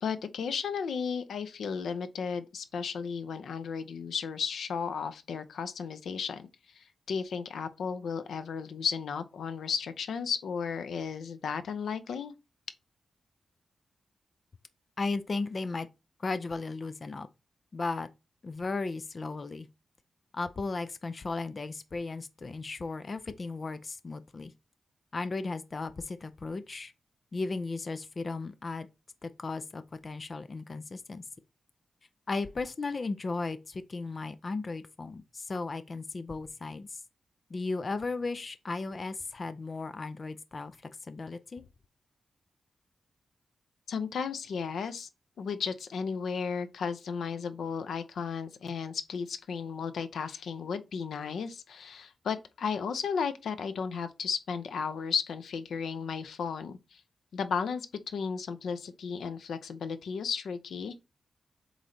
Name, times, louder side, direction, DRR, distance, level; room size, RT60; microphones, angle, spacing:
voice 1, 0.0-6.5 6.7-12.3 43.9-45.1 45.4-57.0 57.3-61.0, left 6 dB, 90° left, 0.6 m, -34 dB
voice 2, 15.0-15.9 16.2-17.3 17.7-18.1 18.4-19.7 20.3-24.5 25.1-26.9 27.3-28.9 29.2-31.2 32.3-37.0 37.5-40.8 41.0-41.6, left 3 dB, 40° left, 0.5 m, -35 dB
7.9 x 3.2 x 3.9 m
wide cardioid pair, 115°, 0 cm